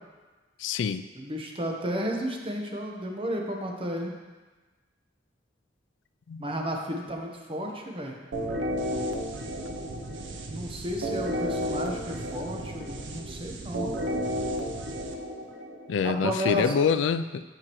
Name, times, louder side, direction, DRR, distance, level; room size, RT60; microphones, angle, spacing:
voice 1, 0.6-1.0 6.3-6.5 15.9-17.4, left 6 dB, 75° left, 11 dB, 0.3 m, -26 dB
voice 2, 1.1-4.2 6.4-8.2 10.5-13.9 16.0-16.7, equal, 30° right, 1 dB, 1.0 m, -32 dB
sound 1, 8.3-16.0, equal, 75° right, 0.7 m, -32 dB
14.0 x 5.0 x 3.0 m, 1.3 s
head